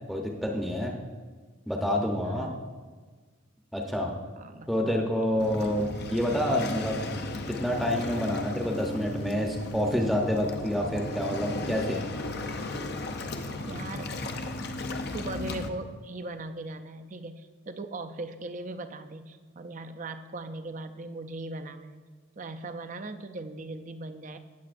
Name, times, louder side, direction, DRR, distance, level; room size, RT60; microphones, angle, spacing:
voice 1, 0.1-0.9 1.7-2.5 3.7-4.1 4.7-7.0 7.6-12.0, equal, ahead, 0 dB, 0.7 m, -28 dB
voice 2, 2.2-2.7 4.4-4.7 5.6-5.7 13.7-14.2 15.1-22.0 22.4-24.4, right 2 dB, 35° right, 8 dB, 0.4 m, -39 dB
Waves surf, 5.4-15.7, left 2 dB, 50° left, 0.6 m, -35 dB
17.5 x 7.2 x 2.5 m, 1.5 s
head